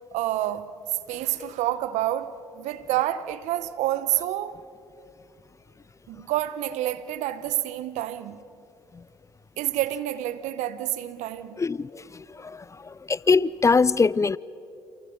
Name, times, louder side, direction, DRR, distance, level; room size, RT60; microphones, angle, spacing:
voice 1, 0.1-0.7 1.1-4.7 6.1-8.4 9.6-11.6, right 13 dB, 70° right, 1.0 m, -28 dB
voice 2, 11.6-12.0 12.4-12.6 13.1-14.4, left 4 dB, 25° left, 0.5 m, -21 dB
29.0 x 28.0 x 5.2 m
hypercardioid pair, 50°, 12 cm